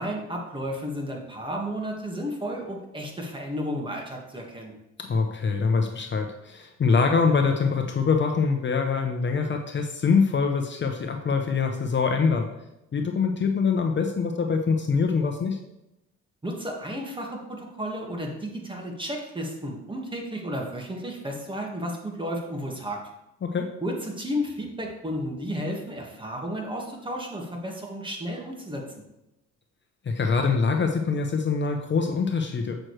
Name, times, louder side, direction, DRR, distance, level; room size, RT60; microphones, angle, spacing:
voice 1, 0.0-4.7 16.4-23.0 23.8-28.8, equal, 15° right, 0 dB, 1.7 m, -33 dB
voice 2, 5.0-12.5 12.9-15.6 23.4-23.7 30.0-32.8, left 5 dB, 40° left, 4 dB, 0.8 m, -24 dB
7.7 x 6.2 x 3.2 m, 0.90 s
cardioid pair, 90°, 30 cm